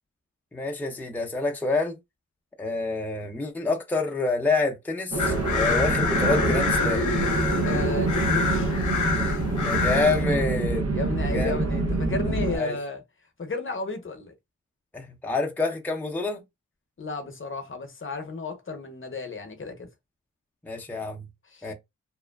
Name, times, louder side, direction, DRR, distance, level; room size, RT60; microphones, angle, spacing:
voice 1, 0.5-2.0 2.6-7.1 9.6-10.9 11.3-11.5 12.5-12.8 14.9-16.4 20.7-21.3 21.6-21.7, left 3 dB, 5° left, 0.6 m, -27 dB
sound 1, 5.1-12.6, right 3 dB, 55° right, 0.8 m, -26 dB
sound 2, 5.2-10.2, left 4 dB, 75° left, 0.7 m, -27 dB
voice 2, 7.6-8.7 10.9-13.0 13.4-14.3 17.0-19.9 21.5-21.7, left 3 dB, 40° left, 0.8 m, -33 dB
2.9 x 2.2 x 2.2 m
cardioid pair, 55°, 30 cm